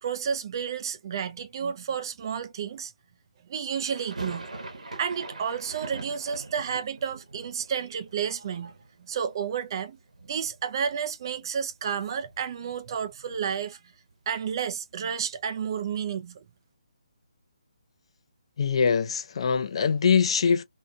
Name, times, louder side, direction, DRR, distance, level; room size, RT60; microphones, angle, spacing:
voice 1, 0.0-2.9 3.5-4.5 5.0-8.7 9.1-10.0 10.3-13.8 14.3-16.4, right 7 dB, 40° right, 0.5 m, -31 dB
sound 1, 3.9-9.8 10.1-10.9 11.2-11.3 11.6-13.7, right 2 dB, 75° right, 1.0 m, -43 dB
voice 2, 18.6-20.6, left 6 dB, 50° left, 0.5 m, -23 dB
2.7 x 2.6 x 2.3 m
figure-of-eight pair, 145°, 4 cm